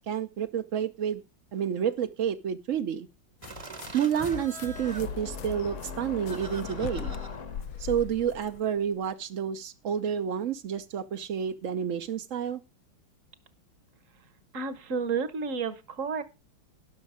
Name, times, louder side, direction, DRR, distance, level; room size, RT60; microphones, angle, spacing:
voice 1, 0.1-1.2 1.5-3.1 3.9-7.2 7.8-12.6, right 8 dB, 65° right, 7 dB, 0.8 m, -30 dB
sound 1, 3.4-9.1, left 8 dB, 80° left, 1.6 m, -41 dB
Laughter, 3.4-8.6, right 2 dB, 25° right, 0.8 m, -45 dB
sound 2, 4.8-7.9, left 4 dB, 45° left, 1.1 m, -40 dB
voice 2, 14.5-16.2, right 5 dB, 45° right, 14 dB, 1.2 m, -31 dB
17.0 x 6.3 x 5.0 m, 0.28 s
omnidirectional pair, 2.3 m